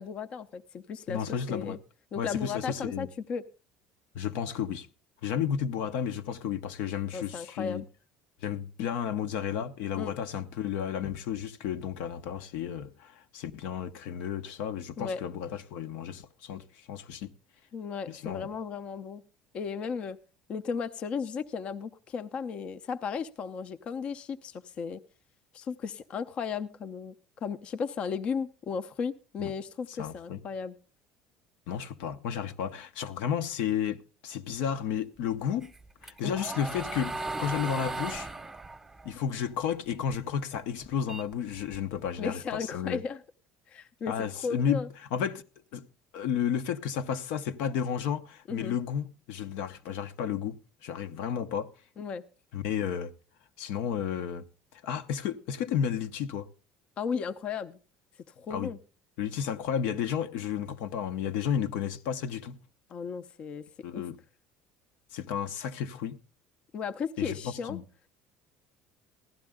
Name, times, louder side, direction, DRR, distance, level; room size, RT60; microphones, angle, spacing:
voice 1, 0.0-1.8 2.1-3.4 7.1-7.8 10.0-10.1 15.0-15.2 17.7-19.2 19.5-20.2 20.5-25.0 25.5-27.1 27.4-30.7 36.2-36.3 42.2-43.2 43.7-44.9 48.5-48.7 52.0-52.2 57.0-57.8 58.4-58.8 62.9-63.6 63.9-64.0 66.7-67.8, left 6 dB, 40° left, 0.6 m, -35 dB
voice 2, 1.1-1.8 2.2-3.1 4.1-4.9 5.2-7.8 8.4-17.3 18.1-18.5 29.4-29.5 30.0-30.4 31.7-35.7 36.0-38.3 39.0-43.0 44.1-44.8 45.1-45.4 45.7-45.8 46.1-51.7 52.5-53.1 53.6-54.4 54.7-56.5 58.5-58.7 59.2-62.6 63.8-64.2 65.1-66.2 67.2-67.8, left 8 dB, 80° left, 0.8 m, -32 dB
sound 1, 35.6-40.1 40.5-42.1, right 2 dB, 10° right, 0.9 m, -37 dB
15.5 x 11.5 x 3.6 m
cardioid pair, 135°, 3 cm